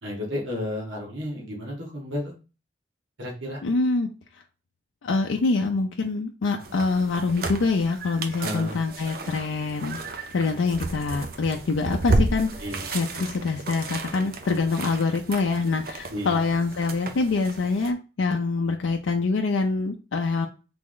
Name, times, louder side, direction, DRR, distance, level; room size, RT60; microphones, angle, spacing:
voice 1, 0.0-2.3 3.2-3.6 8.4-8.8 12.6-12.8 16.1-16.4, left 1 dB, 85° right, -1 dB, 1.3 m, -32 dB
voice 2, 3.6-4.1 5.0-10.0 10.3-12.6 12.9-20.5, left 3 dB, 90° left, 3 dB, 0.4 m, -25 dB
sound 1, 6.6-17.9, right 2 dB, 50° right, 0.6 m, -32 dB
3.4 x 3.1 x 3.7 m, 0.33 s
head